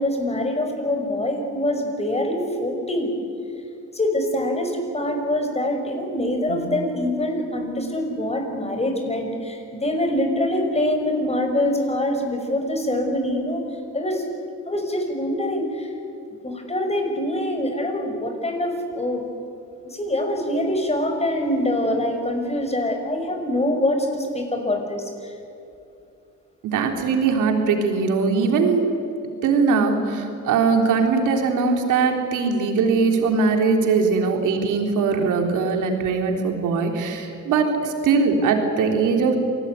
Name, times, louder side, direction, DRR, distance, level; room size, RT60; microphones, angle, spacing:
voice 1, 0.0-3.1 3.9-13.6 13.9-14.2 14.7-15.9 16.4-19.2 19.8-25.3, left 1 dB, 20° left, 4 dB, 5.9 m, -24 dB
voice 2, 26.6-28.8 29.4-39.4, right 4 dB, 85° right, 3 dB, 3.7 m, -21 dB
27.0 x 19.0 x 9.6 m, 2.7 s
cardioid pair, 90°, 30 cm